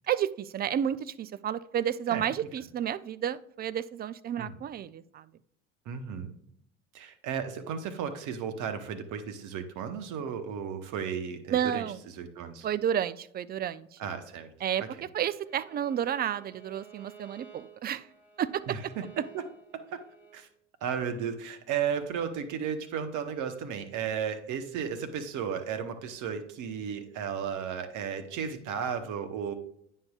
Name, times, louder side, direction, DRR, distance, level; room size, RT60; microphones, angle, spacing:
voice 1, 0.1-5.3 11.5-12.0 12.6-14.0 14.6-18.1 18.4-18.8, right 9 dB, 30° right, 17 dB, 0.4 m, -31 dB
voice 2, 5.9-6.3 6.9-11.8 12.2-12.7 14.0-14.5 18.7-19.0 19.3-19.4 19.9-20.0 20.3-20.5 20.8-29.5, right 7 dB, 60° right, 9 dB, 1.1 m, -34 dB
Bowed string instrument, 15.4-20.4, right 7 dB, 5° right, 2.7 m, -53 dB
9.3 x 5.5 x 2.4 m, 0.70 s
hypercardioid pair, 70°, 35 cm